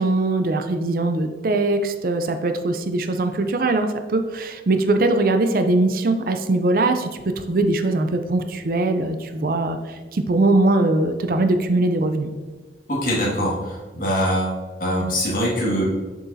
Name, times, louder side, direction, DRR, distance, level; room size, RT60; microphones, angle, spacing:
voice 1, 0.0-7.1 7.4-12.3, right 2 dB, 50° right, 7 dB, 0.4 m, -21 dB
voice 2, 12.9-15.8, equal, 50° left, -4 dB, 1.9 m, -23 dB
6.9 x 6.1 x 2.7 m, 1.3 s
head